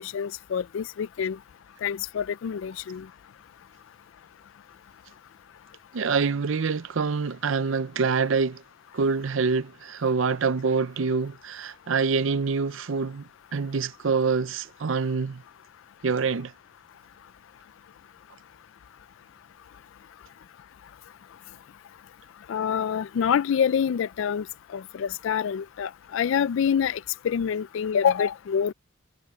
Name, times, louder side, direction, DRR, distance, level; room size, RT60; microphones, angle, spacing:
voice 1, 0.0-1.4 1.8-3.0 22.5-24.4 24.7-27.0 27.2-28.7, left 7 dB, 70° left, 0.3 m, -26 dB
voice 2, 5.9-8.6 8.9-15.4 16.0-16.5, right 5 dB, 70° right, 0.6 m, -26 dB
head